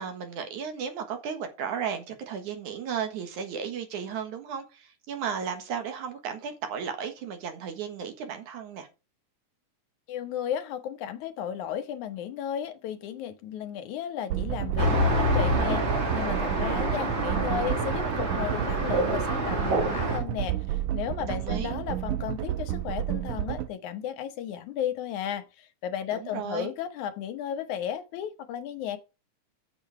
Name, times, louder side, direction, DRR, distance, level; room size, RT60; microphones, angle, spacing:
voice 1, 0.0-8.9 21.3-21.7 26.1-26.7, right 7 dB, 70° right, 2.9 m, -34 dB
voice 2, 10.1-29.0, left 9 dB, 75° left, 2.3 m, -34 dB
sound 1, 14.3-23.7, right 13 dB, 90° right, 2.3 m, -31 dB
Traffic noise roadway noise, 14.8-20.2, equal, 30° right, 1.6 m, -28 dB
sound 2, 18.5-20.3, right 4 dB, 50° right, 3.6 m, -31 dB
9.1 x 7.6 x 4.7 m
omnidirectional pair, 3.6 m